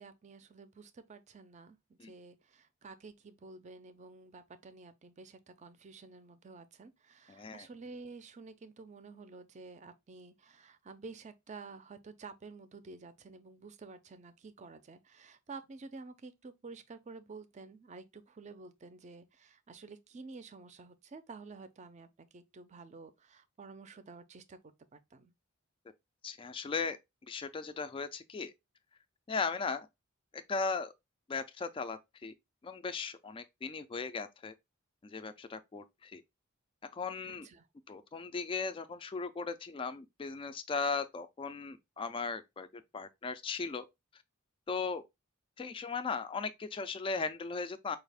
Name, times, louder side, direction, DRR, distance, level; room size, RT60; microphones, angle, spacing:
voice 1, 0.0-25.3 37.3-37.7, right 4 dB, 35° right, 0.5 m, -51 dB
voice 2, 7.3-7.7 26.2-27.0 27.3-28.5 29.3-29.9 30.3-30.9 31.3-32.3 32.6-34.5 35.0-36.2 36.8-37.5 37.9-43.9 44.7-45.0 45.6-48.0, left 4 dB, 25° left, 0.3 m, -37 dB
4.8 x 2.4 x 3.3 m
head